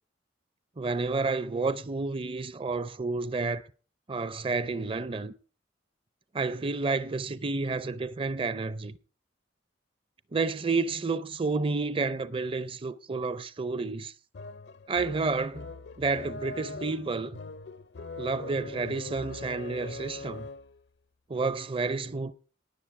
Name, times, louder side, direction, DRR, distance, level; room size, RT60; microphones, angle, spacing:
voice 1, 0.8-3.6 4.1-5.3 6.3-9.0 10.3-14.1 14.9-15.7 16.0-17.4 18.2-20.5 21.3-22.3, right 3 dB, 30° right, 0.5 m, -30 dB
sound 1, 14.3-20.8, left 3 dB, 65° left, 0.5 m, -42 dB
19.0 x 7.1 x 4.7 m
head